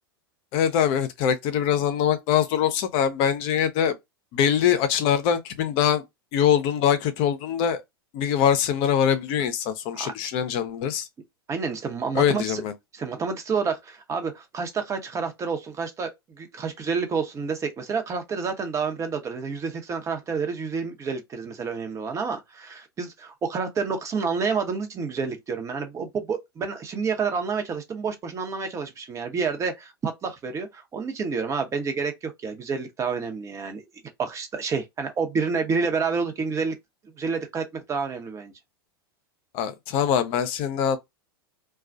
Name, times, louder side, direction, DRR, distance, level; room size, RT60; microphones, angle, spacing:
voice 1, 0.5-3.9 4.3-6.0 6.3-7.8 8.1-11.1 12.1-12.7 39.5-41.0, left 9 dB, 45° left, 0.6 m, -23 dB
voice 2, 11.5-12.6 12.9-33.8 34.2-36.7 37.2-38.5, right 5 dB, 25° right, 0.8 m, -29 dB
2.3 x 2.3 x 2.5 m
hypercardioid pair, 100°, 13 cm